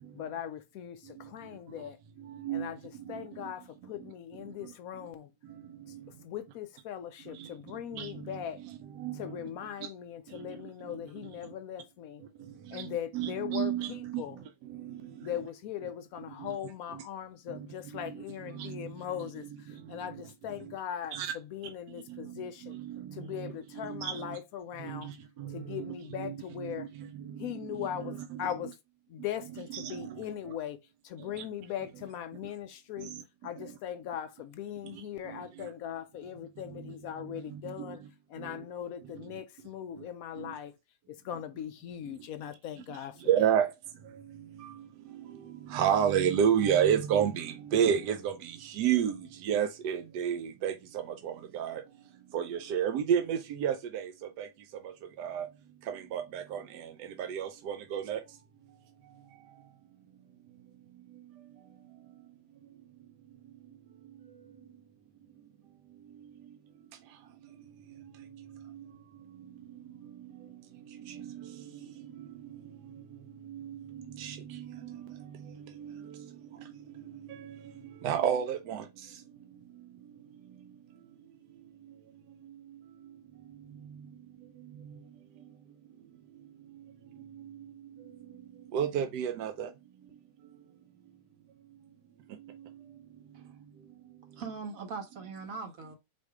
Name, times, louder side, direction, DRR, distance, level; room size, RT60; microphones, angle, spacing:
voice 1, 0.1-2.0 2.5-5.3 5.9-6.0 6.2-8.6 9.1-12.2 12.7-14.4 15.2-22.8 23.1-25.1 25.5-26.9 27.4-28.7 29.1-30.8 31.0-33.1 33.4-38.0 38.3-40.7 41.1-43.5, left 10 dB, 70° left, 0.9 m, -40 dB
voice 2, 2.2-2.7 3.1-3.5 5.9-6.0 7.3-7.5 7.9-8.4 9.0-9.4 10.3-10.5 12.7-14.2 14.7-15.0 16.4-16.6 16.9-17.0 17.5-17.7 17.9-18.2 18.5-18.9 19.2-19.3 20.0-20.2 20.6-20.7 21.1-21.3 22.1-22.3 22.6-24.4 24.8-28.5 29.7-30.2 31.2-31.4 33.0-33.2 33.6-33.7 34.9-35.7 37.5-38.0 38.4-38.5 40.4-40.5 43.2-43.7 44.1-51.8 52.3-54.1 54.4-54.5 55.2-55.5 55.9-58.2 68.5-68.9 70.9-71.6 72.0-72.6 73.4-76.3 77.3-78.9 87.2-87.7 88.7-89.7 92.5-92.6, right 9 dB, 75° right, 1.2 m, -32 dB
voice 3, 94.3-96.0, right 5 dB, 55° right, 1.2 m, -41 dB
4.3 x 2.6 x 4.6 m
omnidirectional pair, 1.8 m